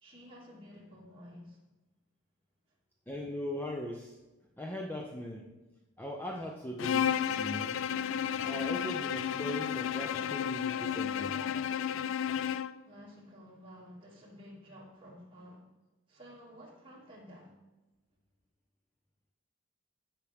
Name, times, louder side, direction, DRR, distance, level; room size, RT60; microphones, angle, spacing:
voice 1, 0.0-1.6 12.8-15.7 16.1-17.6, equal, 25° right, -4 dB, 2.5 m, -52 dB
voice 2, 3.1-4.2 4.6-5.5 6.0-7.9 8.4-11.4, equal, 10° left, 0 dB, 0.6 m, -39 dB
Bowed string instrument, 6.8-12.8, left 9 dB, 70° left, 0.3 m, -32 dB
15.5 x 5.9 x 3.5 m, 1.1 s
head